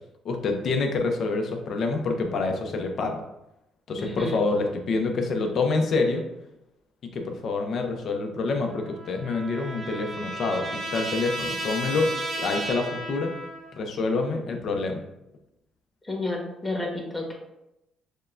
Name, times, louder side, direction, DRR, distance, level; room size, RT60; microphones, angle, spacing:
voice 1, 0.2-3.2 3.9-6.2 7.1-12.1 12.4-13.3 13.7-15.0, left 3 dB, 60° left, 4 dB, 0.6 m, -27 dB
voice 2, 4.0-4.3 16.1-17.3, left 2 dB, 20° left, -1 dB, 1.2 m, -30 dB
Trumpet, 8.7-13.8, right 1 dB, 45° right, 0.7 m, -34 dB
6.4 x 2.2 x 2.5 m, 0.88 s
cardioid pair, 85°, 0 cm